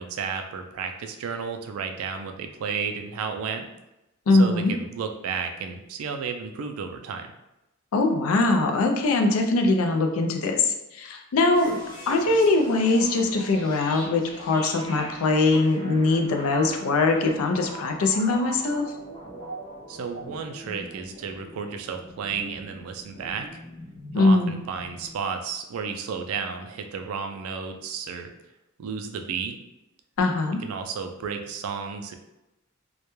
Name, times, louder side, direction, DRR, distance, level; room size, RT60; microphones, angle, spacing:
voice 1, 0.0-3.7 4.4-7.3 19.9-23.5 24.1-28.3 28.8-29.6 30.6-32.2, right 6 dB, 80° right, 6 dB, 0.3 m, -32 dB
voice 2, 4.3-4.7 7.9-11.8 12.1-18.9 24.1-24.6 30.2-30.6, left 3 dB, 80° left, 4 dB, 0.4 m, -22 dB
sound 1, 11.5-25.1, right 1 dB, 20° left, 0.5 m, -41 dB
2.2 x 2.1 x 2.9 m, 0.92 s
head